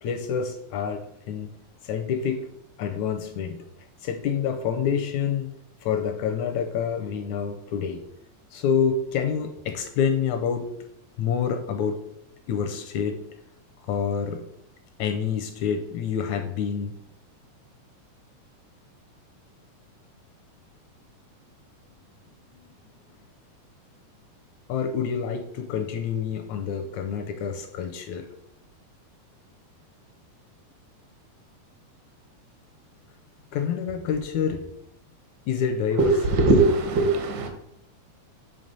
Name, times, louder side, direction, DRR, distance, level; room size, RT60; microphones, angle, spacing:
voice 1, 0.0-1.5 1.8-2.5 2.8-3.6 4.0-5.5 5.8-8.0 8.5-10.7 11.2-12.0 12.5-13.2 13.9-14.4 15.0-16.9 24.7-28.3 33.5-34.6 35.5-36.2, left 7 dB, 80° left, 6 dB, 1.7 m, -27 dB
voice 2, 36.0-37.5, right 2 dB, 65° right, 4 dB, 1.0 m, -20 dB
8.6 x 3.2 x 5.3 m, 0.75 s
omnidirectional pair, 3.7 m